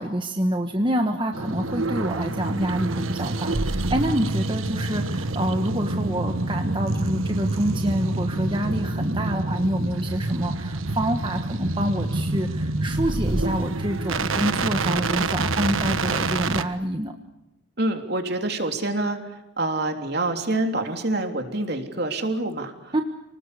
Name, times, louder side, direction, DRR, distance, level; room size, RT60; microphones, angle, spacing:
voice 1, 0.0-17.2 22.9-23.0, right 1 dB, 25° right, 4 dB, 1.4 m, -27 dB
sound 1, 1.3-16.6, right 2 dB, 90° right, 1.4 m, -27 dB
voice 2, 17.8-19.2 19.6-23.0, right 2 dB, 55° right, 5 dB, 3.4 m, -26 dB
29.5 x 19.5 x 8.4 m, 0.92 s
head